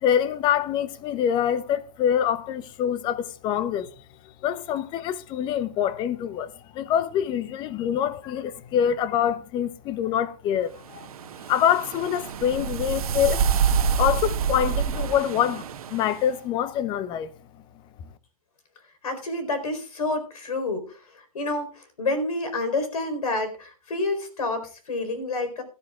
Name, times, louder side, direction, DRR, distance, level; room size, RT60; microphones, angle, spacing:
voice 1, 0.0-3.9 4.4-11.1 11.5-13.5 14.0-17.3, left 9 dB, 25° left, 0.9 m, -25 dB
sound 1, 10.9-16.2, right 7 dB, 75° right, 1.2 m, -27 dB
voice 2, 19.0-25.6, left 2 dB, 90° left, 4.4 m, -29 dB
18.0 x 13.0 x 2.4 m
hypercardioid pair, 145°, 19 cm